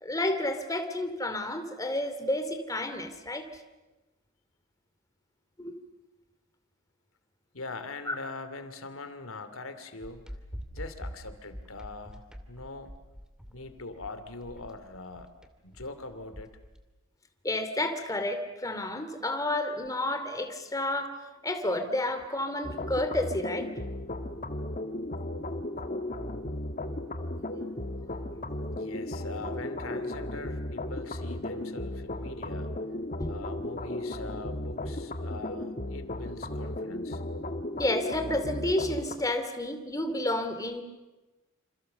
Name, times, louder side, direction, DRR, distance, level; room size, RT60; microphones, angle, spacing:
voice 1, 0.0-3.5 5.6-5.7 8.1-8.2 17.4-21.1 21.4-23.7 27.2-27.3 33.2-33.3 37.7-40.8, left 1 dB, 15° left, 7 dB, 2.7 m, -30 dB
voice 2, 7.5-10.3 10.7-12.9 13.5-15.3 15.6-16.5 28.7-32.7 33.3-37.2, left 3 dB, 90° left, 10 dB, 2.7 m, -42 dB
sound 1, 10.0-16.8, equal, 5° right, 2.4 m, -44 dB
sound 2, 22.6-39.2, left 1 dB, 40° left, 1.6 m, -35 dB
28.0 x 28.0 x 6.8 m, 1.1 s
head